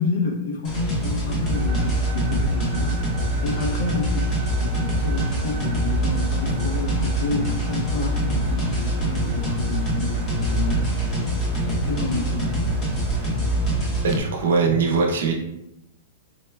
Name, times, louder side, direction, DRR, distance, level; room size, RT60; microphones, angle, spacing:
voice 1, 0.0-4.3 4.6-12.7, left 3 dB, 65° left, 2 dB, 0.7 m, -30 dB
sound 1, 0.6-14.2, right 1 dB, 25° left, 0.7 m, -24 dB
sound 2, 1.5-13.6, right 2 dB, 50° right, 0.8 m, -40 dB
voice 2, 14.0-15.3, right 4 dB, 85° right, 2 dB, 0.6 m, -21 dB
4.4 x 2.2 x 2.2 m, 0.89 s
supercardioid pair, 170°, 0 cm